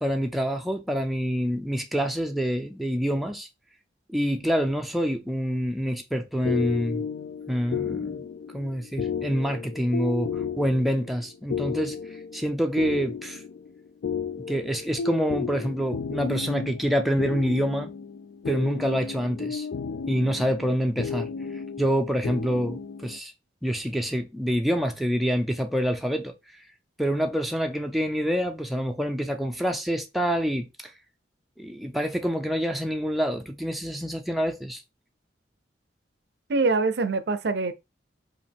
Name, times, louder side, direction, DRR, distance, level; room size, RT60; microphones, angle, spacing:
voice 1, 0.0-3.5 4.1-7.1 7.5-8.2 8.5-13.4 14.5-17.9 18.5-19.7 20.1-21.3 21.8-23.3 23.6-26.6 27.0-30.9 31.6-34.8, equal, ahead, 0.4 m, -27 dB
sound 1, 6.4-23.2, left 6 dB, 65° left, 0.3 m, -33 dB
voice 2, 36.5-37.7, right 3 dB, 65° right, 0.5 m, -24 dB
5.0 x 2.5 x 3.4 m
head